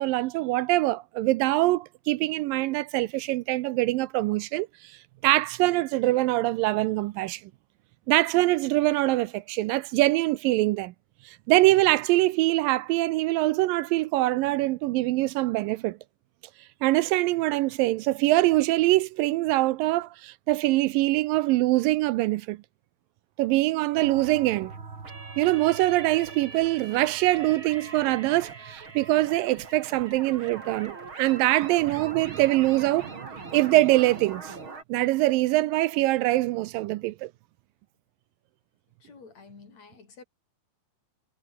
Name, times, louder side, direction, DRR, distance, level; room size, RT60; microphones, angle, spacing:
voice 1, 0.0-4.7 5.2-7.4 8.1-10.9 11.3-16.0 16.8-22.6 23.4-24.7 25.4-33.1 33.5-34.5 34.9-37.3, right 18 dB, 85° right, 2.3 m, -23 dB
sound 1, 24.0-34.8, right 4 dB, 35° right, 4.7 m, -42 dB
voice 2, 39.0-40.2, left 4 dB, 50° left, 5.6 m, -50 dB
omnidirectional pair, 4.1 m